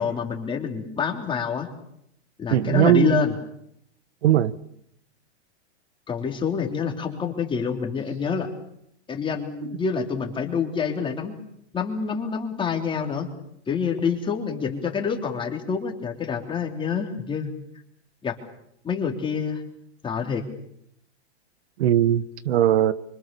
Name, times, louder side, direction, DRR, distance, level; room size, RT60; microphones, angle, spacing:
voice 1, 0.0-1.7 2.4-3.3 6.1-8.5 9.1-11.4 11.7-13.3 13.7-17.5 18.2-18.4 18.8-19.6 20.0-20.4, left 6 dB, 15° left, 3.5 m, -27 dB
voice 2, 2.5-3.2 4.2-4.5 21.8-22.9, right 11 dB, 70° right, 1.3 m, -19 dB
26.5 x 25.5 x 7.0 m
supercardioid pair, 150°, 34 cm